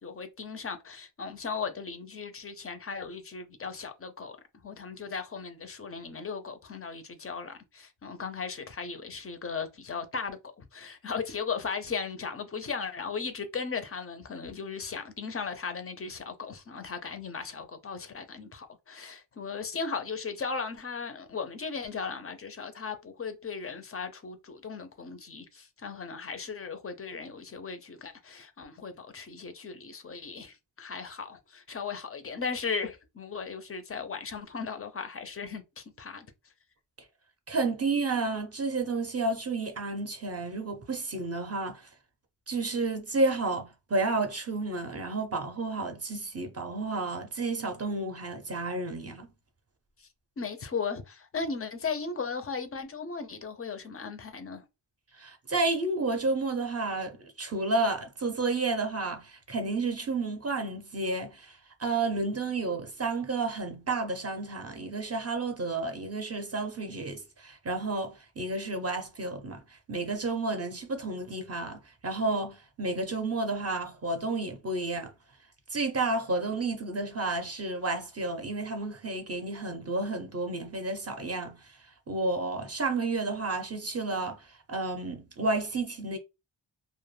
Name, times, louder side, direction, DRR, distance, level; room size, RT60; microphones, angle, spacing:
voice 1, 0.0-4.4 4.6-36.3 50.0-50.1 50.4-54.7, left 5 dB, 30° left, 0.4 m, -37 dB
voice 2, 37.5-41.9 42.5-49.3 55.2-69.6 69.9-75.1 75.7-81.6 82.1-86.2, right 3 dB, 35° right, 0.5 m, -31 dB
2.1 x 2.0 x 3.1 m
wide cardioid pair, 110°, 47 cm